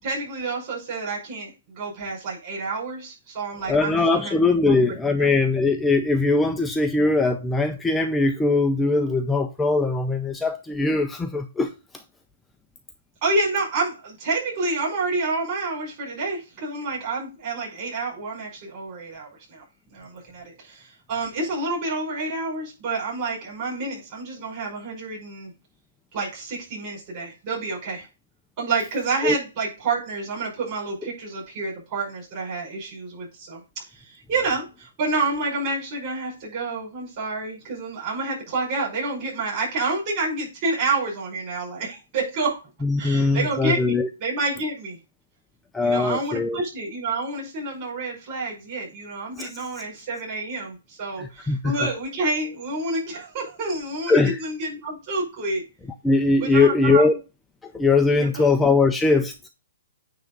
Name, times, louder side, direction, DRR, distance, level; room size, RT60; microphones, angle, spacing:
voice 1, 0.0-4.3 4.6-4.7 5.2-5.3 13.2-19.6 19.9-25.5 26.1-28.1 28.6-33.6 33.9-42.6 43.0-45.0 45.8-55.6 56.4-57.2 58.2-58.5, right 3 dB, 25° right, 5.1 m, -29 dB
voice 2, 3.7-11.7 29.2-29.4 42.8-44.1 45.7-46.6 49.4-49.5 51.2-51.7 54.1-54.4 56.0-57.2 57.6-59.3, left 3 dB, 5° left, 0.4 m, -21 dB
9.4 x 3.6 x 5.2 m
hypercardioid pair, 170°, 0 cm